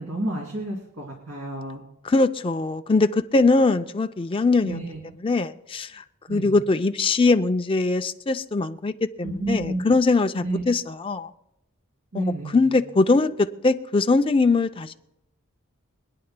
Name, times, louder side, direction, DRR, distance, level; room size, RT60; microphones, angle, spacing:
voice 1, 0.0-1.8 4.6-5.0 6.3-6.6 9.2-9.8 10.4-10.6 12.1-12.8, right 1 dB, 90° right, 2.7 m, -30 dB
voice 2, 2.1-4.8 5.2-6.0 6.3-8.9 9.2-11.3 12.1-12.2 12.5-14.9, left 3 dB, 25° left, 0.4 m, -21 dB
25.5 x 9.7 x 2.2 m
head